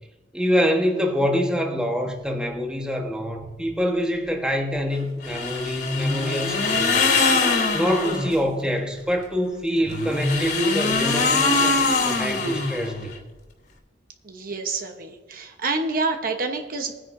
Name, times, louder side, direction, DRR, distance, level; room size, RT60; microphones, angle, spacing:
voice 1, 0.3-7.1 7.7-13.1, equal, 5° right, 1 dB, 1.2 m, -25 dB
sound 1, 5.2-8.4 9.8-13.2, left 3 dB, 65° left, 3.0 m, -22 dB
voice 2, 14.2-16.9, right 3 dB, 50° right, 4 dB, 1.0 m, -27 dB
19.5 x 9.9 x 2.6 m, 1.2 s
head